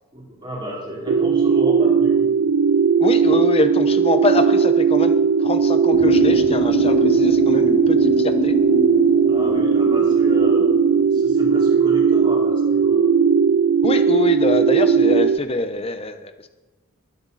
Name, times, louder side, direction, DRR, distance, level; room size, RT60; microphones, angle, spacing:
voice 1, 0.1-2.3 9.2-10.7 11.1-13.0, equal, 20° right, -5 dB, 4.8 m, -32 dB
sound 1, 1.1-15.4, right 6 dB, 60° right, 0.3 m, -17 dB
voice 2, 3.0-8.5 13.8-16.5, left 2 dB, 25° left, 9 dB, 0.9 m, -24 dB
sound 2, 5.9-11.2, left 2 dB, 40° left, 1.2 m, -26 dB
19.5 x 10.5 x 4.2 m, 1.2 s
head